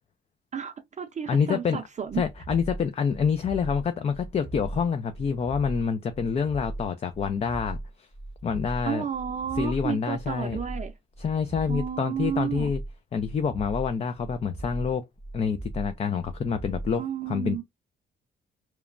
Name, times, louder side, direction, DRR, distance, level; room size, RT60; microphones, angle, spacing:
voice 1, 0.5-2.2 8.9-10.9 11.7-12.7 17.0-17.6, right 8 dB, 35° right, 0.5 m, -31 dB
voice 2, 1.3-1.8 2.2-8.1 8.4-9.0 9.6-10.6 11.2-12.8 13.1-15.0 15.3-17.6, left 6 dB, 35° left, 0.4 m, -27 dB
sound 1, 2.0-17.0, right 2 dB, 10° left, 0.8 m, -38 dB
3.0 x 2.1 x 2.4 m
cardioid pair, 90°, 20 cm